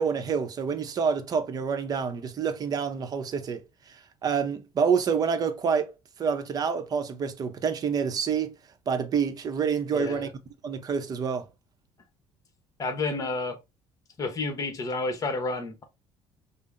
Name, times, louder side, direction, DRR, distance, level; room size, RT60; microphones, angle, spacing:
voice 1, 0.0-3.6 3.9-5.9 6.2-8.5 8.9-10.3 10.6-11.5, right 6 dB, 40° right, 0.6 m, -27 dB
voice 2, 9.9-10.3 12.8-13.6 14.2-15.8, left 3 dB, 35° left, 1.0 m, -30 dB
5.3 x 2.0 x 2.5 m
cardioid pair, 110°, 10 cm